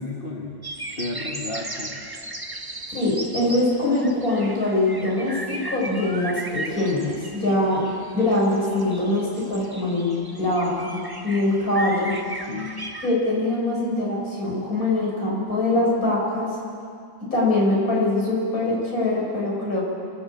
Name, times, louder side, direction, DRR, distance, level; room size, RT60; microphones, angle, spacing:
voice 1, 0.0-2.0 3.4-3.5 12.5-12.8, left 2 dB, 30° left, -1 dB, 1.7 m, -33 dB
sound 1, 0.6-13.1, right 1 dB, 15° right, 1.3 m, -36 dB
voice 2, 2.9-7.8 8.1-12.1 13.0-16.5 17.3-19.8, left 2 dB, 50° left, -4 dB, 7.2 m, -23 dB
27.5 x 13.5 x 9.0 m, 2.4 s
omnidirectional pair, 2.0 m